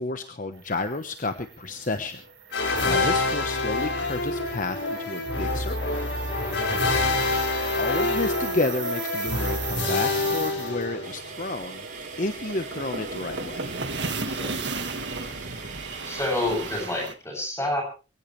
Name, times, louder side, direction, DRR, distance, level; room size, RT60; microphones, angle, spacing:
voice 1, 0.0-2.2 2.5-5.9 6.4-6.8 7.8-11.9 12.2-13.8, left 2 dB, 45° left, 8 dB, 1.0 m, -31 dB
sound 1, 0.7-17.1, right 4 dB, 70° right, 1.8 m, -36 dB
sound 2, 2.5-11.4, left 3 dB, 70° left, 5.7 m, -26 dB
voice 2, 6.5-6.8 14.3-14.6 16.0-17.8, left 1 dB, 15° left, 2 dB, 7.9 m, -29 dB
sound 3, 11.0-16.9, right 5 dB, 45° right, 4.8 m, -43 dB
23.0 x 16.0 x 3.2 m, 0.35 s
head